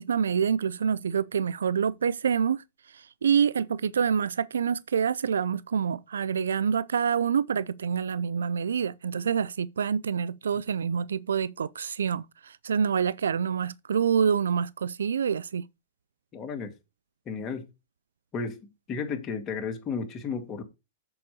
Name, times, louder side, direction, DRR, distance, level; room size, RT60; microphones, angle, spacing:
voice 1, 0.0-15.7, right 7 dB, 90° right, 0.3 m, -27 dB
voice 2, 16.3-16.7 17.3-17.7 18.3-18.6 18.9-20.6, left 5 dB, 25° left, 2.0 m, -33 dB
6.9 x 4.5 x 6.7 m
hypercardioid pair, 130°, 0 cm